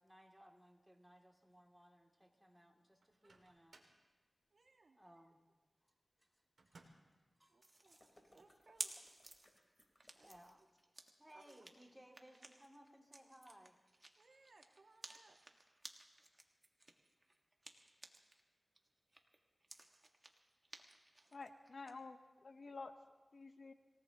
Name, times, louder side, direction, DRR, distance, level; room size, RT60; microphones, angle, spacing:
voice 1, 0.0-3.9 4.9-5.4 5.8-5.9 6.2-6.8 7.4-7.6 10.2-10.6 11.2-13.8, equal, 5° right, 0 dB, 2.6 m, -63 dB
Microwave oven, 3.0-4.1 6.6-7.2, right 3 dB, 85° right, 2.2 m, -65 dB
voice 2, 4.5-5.0 7.5-8.0 8.3-8.9 10.1-10.4 11.3-11.7 14.2-15.4 16.2-16.4 20.9-21.3, right 3 dB, 70° right, 3 dB, 1.7 m, -67 dB
sound 1, 7.6-18.4 18.8-21.9, right 2 dB, 35° right, 1.6 m, -55 dB
sound 2, 7.8-10.8, left 1 dB, 35° left, 4.1 m, -70 dB
voice 3, 21.3-22.9 23.3-23.7, left 3 dB, 70° left, 8 dB, 1.0 m, -51 dB
26.0 x 18.0 x 3.0 m, 1.3 s
cardioid pair, 50°, 0 cm